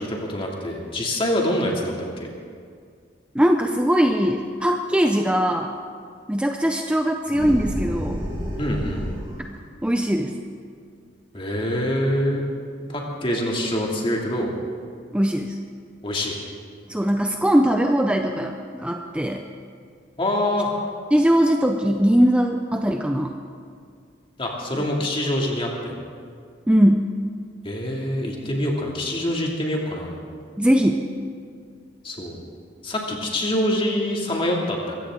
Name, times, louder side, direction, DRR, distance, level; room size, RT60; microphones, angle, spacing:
voice 1, 0.0-2.3 8.6-9.1 11.3-12.4 12.9-14.5 16.0-16.4 20.2-20.7 24.4-25.9 27.6-30.2 32.0-32.4 32.8-34.9, left 1 dB, 30° left, -1 dB, 2.5 m, -25 dB
voice 2, 3.3-5.7 6.3-8.2 9.5-10.3 15.1-15.6 16.9-19.5 21.1-23.4 24.7-24.8 26.7-27.1 30.6-31.1, equal, 5° right, 4 dB, 0.6 m, -20 dB
sound 1, 7.3-9.5, equal, 25° right, 5.0 m, -30 dB
22.5 x 15.5 x 3.8 m, 2.2 s
head